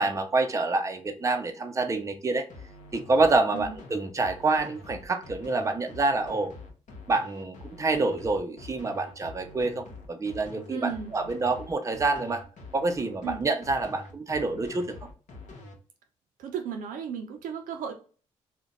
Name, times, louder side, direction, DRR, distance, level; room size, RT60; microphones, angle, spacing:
voice 1, 0.0-2.5 2.9-6.5 7.1-12.4 12.7-15.0, right 3 dB, 20° right, 6 dB, 0.5 m, -27 dB
sound 1, 2.5-15.7, left 2 dB, 60° left, 0.8 m, -45 dB
voice 2, 10.7-11.1 13.2-13.4 16.4-17.9, right 7 dB, 70° right, 4 dB, 0.5 m, -34 dB
2.5 x 2.1 x 3.9 m, 0.38 s
hypercardioid pair, 45°, 15 cm